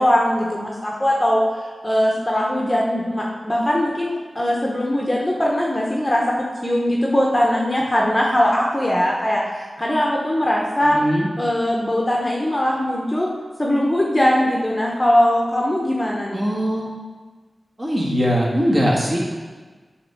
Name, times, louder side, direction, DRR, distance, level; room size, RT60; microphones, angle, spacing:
voice 1, 0.0-1.4 1.8-6.2 6.6-11.0 11.4-13.3 13.6-16.5, left 1 dB, 20° left, -3 dB, 1.0 m, -20 dB
voice 2, 10.8-11.3 16.3-16.9 17.8-19.3, equal, 25° right, -4 dB, 1.8 m, -21 dB
8.5 x 3.6 x 6.1 m, 1.4 s
wide cardioid pair, 70°, 0 cm